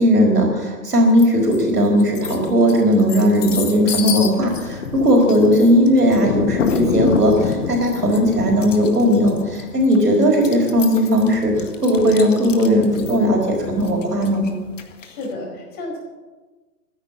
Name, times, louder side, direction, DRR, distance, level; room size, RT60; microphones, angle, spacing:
voice 1, 0.0-14.4, equal, 75° right, 1 dB, 4.7 m, -17 dB
sound 1, 1.2-1.6 2.0-15.3, left 6 dB, 50° left, 1.8 m, -28 dB
voice 2, 15.0-16.0, left 2 dB, 20° left, 0 dB, 4.8 m, -31 dB
15.0 x 9.2 x 8.5 m, 1.3 s
figure-of-eight pair, 125°, 47 cm